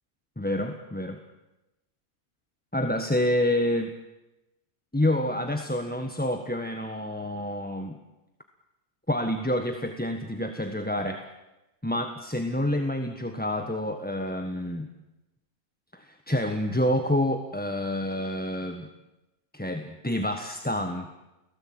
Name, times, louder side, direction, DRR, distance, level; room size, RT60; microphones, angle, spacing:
voice 1, 0.4-1.2 2.7-3.9 4.9-8.0 9.1-11.3 11.8-14.9 15.9-18.9 19.5-21.1, left 1 dB, 5° left, 5 dB, 1.4 m, -28 dB
30.0 x 18.0 x 8.9 m, 1.0 s
omnidirectional pair, 1.6 m